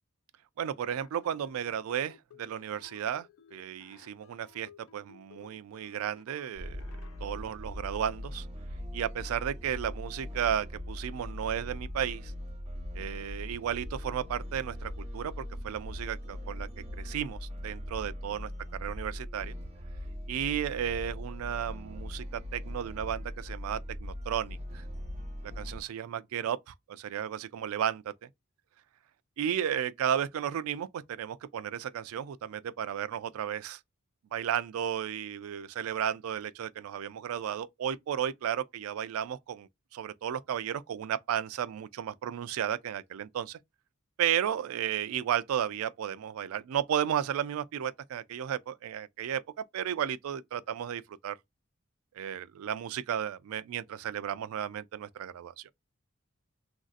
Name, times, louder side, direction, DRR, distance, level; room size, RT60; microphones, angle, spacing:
voice 1, 0.6-6.8 7.2-8.5 8.9-12.3 12.9-19.5 20.3-24.8 25.6-28.3 29.4-33.8 34.3-43.6 44.2-49.4 49.7-51.4 52.1-55.7, right 9 dB, 80° right, 0.3 m, -34 dB
sound 1, 0.7-7.3, left 7 dB, 80° left, 0.4 m, -57 dB
sound 2, 6.6-25.8, equal, 30° right, 0.9 m, -40 dB
3.1 x 2.5 x 2.4 m
head